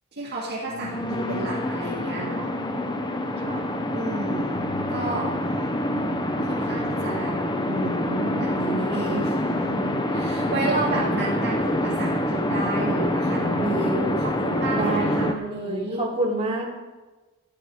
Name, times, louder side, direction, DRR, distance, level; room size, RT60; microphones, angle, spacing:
voice 1, 0.1-2.5 3.9-5.7 6.4-7.4 7.6-16.0, right 2 dB, 50° right, -5 dB, 2.1 m, -31 dB
sound 1, 0.6-15.3, left 1 dB, 20° left, 0.7 m, -26 dB
sound 2, 4.5-11.3, left 2 dB, 40° left, 1.4 m, -46 dB
voice 2, 14.7-16.7, right 2 dB, 30° right, -3 dB, 3.0 m, -28 dB
13.5 x 11.0 x 4.7 m, 1.2 s
head